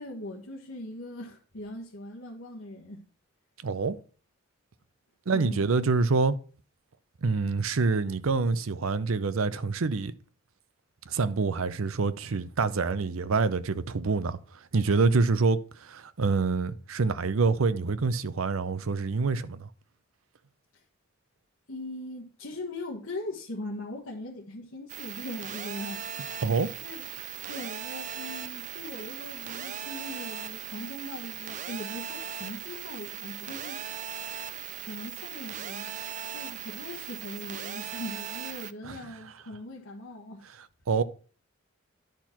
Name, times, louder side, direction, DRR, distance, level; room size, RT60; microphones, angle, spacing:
voice 1, 0.0-3.0 5.3-5.7 20.7-20.8 21.7-26.3 26.8-27.0 27.5-33.8 34.8-35.9 36.3-40.5, left 1 dB, 70° left, 1.4 m, -40 dB
voice 2, 3.6-4.0 5.3-6.4 7.2-10.1 11.1-14.4 14.7-19.7 26.4-26.7 38.8-39.0 40.9-41.0, right 4 dB, 80° right, 0.6 m, -26 dB
sound 1, 24.9-38.7, right 9 dB, 40° right, 0.4 m, -38 dB
10.5 x 4.4 x 5.8 m
head